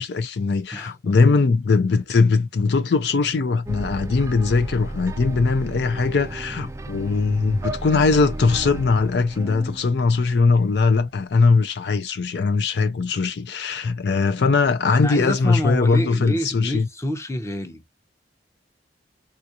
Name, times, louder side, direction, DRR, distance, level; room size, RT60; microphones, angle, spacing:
voice 1, 0.0-16.9, left 4 dB, 65° left, 0.4 m, -20 dB
voice 2, 0.7-1.2 14.9-17.8, equal, 15° left, 0.8 m, -28 dB
sound 1, 3.7-10.9, right 2 dB, 15° right, 0.3 m, -33 dB
3.5 x 2.5 x 2.8 m
head